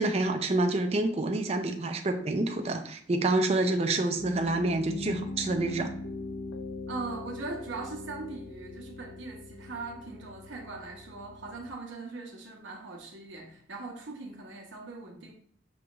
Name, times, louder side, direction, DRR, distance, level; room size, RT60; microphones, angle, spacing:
voice 1, 0.0-5.9, right 2 dB, 30° right, 5 dB, 0.4 m, -27 dB
Piano, 4.2-11.7, left 2 dB, 75° left, 0.5 m, -41 dB
voice 2, 6.9-15.3, right 3 dB, 75° right, 0 dB, 1.0 m, -40 dB
6.2 x 2.4 x 3.0 m, 0.63 s
head